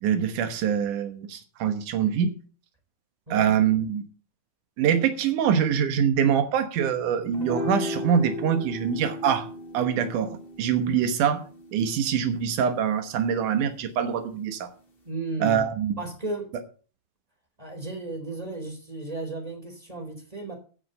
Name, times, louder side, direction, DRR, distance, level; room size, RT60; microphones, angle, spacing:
voice 1, 0.0-2.3 3.3-4.0 4.8-9.5 9.7-11.4 11.7-14.7 15.4-16.0, right 8 dB, 90° right, 8 dB, 2.7 m, -24 dB
sound 1, 7.3-13.9, left 1 dB, 25° left, 1.4 m, -37 dB
voice 2, 15.1-15.7 16.0-16.4 17.6-20.5, right 2 dB, 10° right, 3 dB, 3.5 m, -34 dB
14.5 x 6.5 x 6.7 m, 0.39 s
omnidirectional pair, 3.5 m